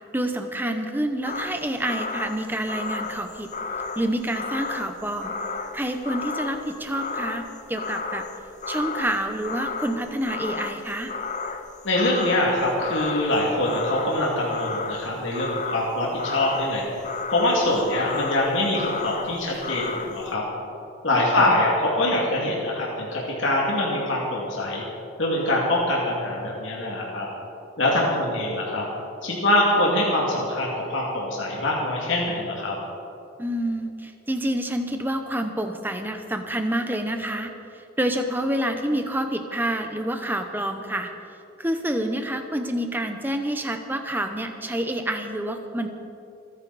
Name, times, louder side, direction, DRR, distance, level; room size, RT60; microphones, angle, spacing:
voice 1, 0.1-3.5 4.0-5.3 5.7-8.2 8.7-11.1 21.1-21.6 33.4-41.1 41.6-45.9, right 1 dB, 10° right, 6 dB, 0.9 m, -28 dB
sound 1, 1.2-20.3, left 4 dB, 35° left, 0.6 m, -33 dB
voice 2, 11.8-16.9 17.3-20.4 21.0-24.8 25.2-27.3 27.8-28.9 29.2-32.7, left 1 dB, 60° left, -4 dB, 2.5 m, -24 dB
26.5 x 10.0 x 4.2 m, 2.8 s
head